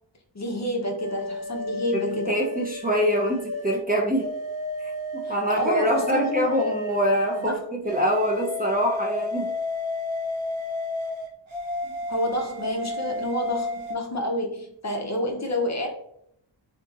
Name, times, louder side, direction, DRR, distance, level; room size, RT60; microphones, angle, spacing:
voice 1, 0.3-2.4 5.2-6.6 7.4-7.5 12.1-15.9, left 1 dB, 35° left, 2 dB, 0.6 m, -29 dB
sound 1, 1.0-3.8 4.2-7.5 7.9-14.0, left 2 dB, 85° right, 0.6 m, -32 dB
voice 2, 1.9-4.3 5.1-9.5, equal, 20° right, -1 dB, 0.5 m, -24 dB
2.8 x 2.4 x 2.4 m, 0.71 s
wide cardioid pair, 55°, 46 cm